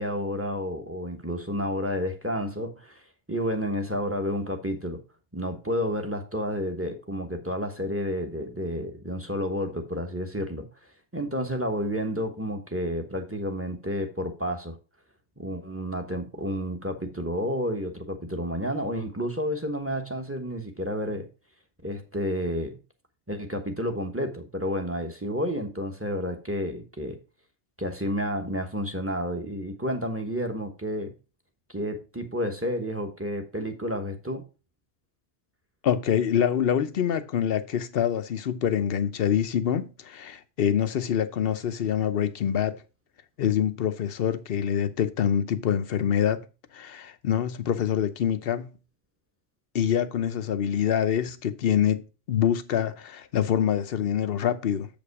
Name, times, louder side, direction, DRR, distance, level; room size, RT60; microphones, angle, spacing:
voice 1, 0.0-3.0 3.3-5.0 5.3-10.6 11.1-14.8 15.4-21.3 21.8-22.8 23.3-27.2 27.8-31.1 31.7-34.4, equal, 10° right, 1.1 m, -30 dB
voice 2, 35.8-42.8 43.4-46.5 46.7-48.7 49.7-52.0 52.3-54.9, left 9 dB, 55° left, 0.9 m, -25 dB
7.5 x 5.3 x 4.7 m
omnidirectional pair, 1.2 m